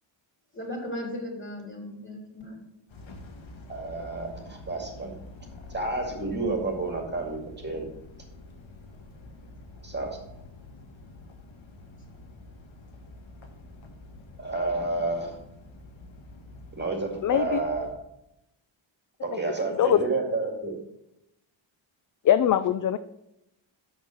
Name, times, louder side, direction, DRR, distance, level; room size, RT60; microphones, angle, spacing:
voice 1, 0.5-2.7, left 1 dB, 25° left, -1 dB, 3.6 m, -36 dB
sound 1, 2.9-17.9, left 2 dB, 65° left, 1.5 m, -47 dB
voice 2, 3.7-5.1 5.7-7.9 9.8-10.2 14.4-15.4 16.7-17.9 19.2-20.7, right 3 dB, 20° right, 1 dB, 2.2 m, -30 dB
voice 3, 17.2-17.6 19.8-20.0 22.2-23.0, left 10 dB, 40° left, 12 dB, 0.4 m, -21 dB
6.6 x 6.1 x 7.0 m, 0.84 s
cardioid pair, 95°, 50 cm